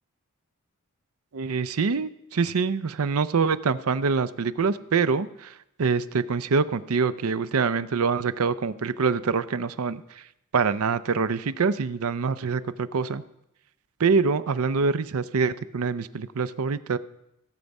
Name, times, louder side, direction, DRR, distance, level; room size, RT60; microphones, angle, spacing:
voice 1, 1.3-5.5 5.8-10.2 10.5-13.2 14.0-17.0, right 5 dB, 75° right, 14 dB, 0.6 m, -25 dB
16.5 x 7.1 x 5.3 m, 0.82 s
head